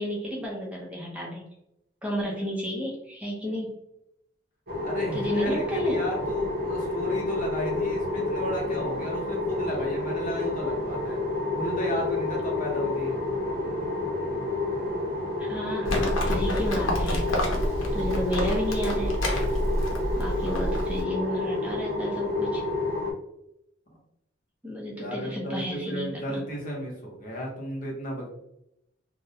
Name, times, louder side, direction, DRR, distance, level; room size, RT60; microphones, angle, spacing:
voice 1, 0.0-1.4 2.0-3.7 5.1-5.9 15.4-17.5 17.9-19.1 20.2-22.6 24.6-26.4, left 1 dB, 5° right, -4 dB, 0.5 m, -32 dB
sound 1, 4.7-23.1, left 2 dB, 50° right, 0.6 m, -29 dB
voice 2, 4.8-11.2 11.5-13.2 25.0-28.3, equal, 45° left, -2 dB, 0.7 m, -33 dB
Livestock farm animals working animals, 15.8-21.0, equal, 85° left, 0.6 m, -28 dB
2.4 x 2.1 x 2.7 m, 0.80 s
head